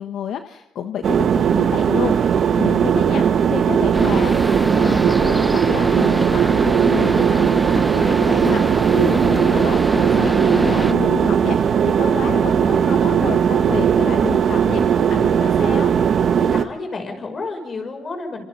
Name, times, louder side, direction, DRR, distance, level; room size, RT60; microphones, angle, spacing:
voice 1, 0.0-4.3 4.7-15.9, left 8 dB, 75° left, 7 dB, 1.2 m, -29 dB
sound 1, 1.0-16.6, right 8 dB, 60° right, 1.3 m, -18 dB
sound 2, 3.9-10.9, equal, ahead, 0.9 m, -26 dB
voice 2, 16.5-18.4, left 3 dB, 40° left, 4 dB, 6.9 m, -30 dB
28.0 x 26.5 x 4.0 m, 0.95 s
cardioid pair, 90°, 0 cm